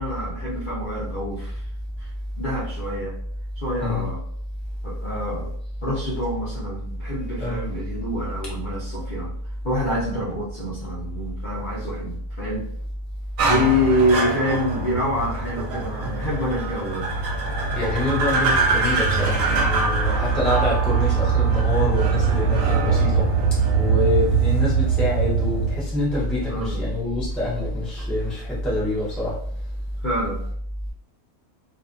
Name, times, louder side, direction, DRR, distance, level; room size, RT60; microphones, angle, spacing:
voice 1, 0.0-1.7 2.0-3.2 3.6-4.2 4.8-5.5 5.8-9.3 9.6-12.7 13.5-17.1 26.5-26.9 30.0-30.4, equal, 55° left, -8 dB, 0.5 m, -26 dB
sound 1, 13.4-25.8, right 5 dB, 65° right, 0.9 m, -22 dB
voice 2, 17.7-23.3 23.7-29.4, left 1 dB, ahead, -7 dB, 0.4 m, -25 dB
2.5 x 2.5 x 2.5 m, 0.64 s
omnidirectional pair, 1.6 m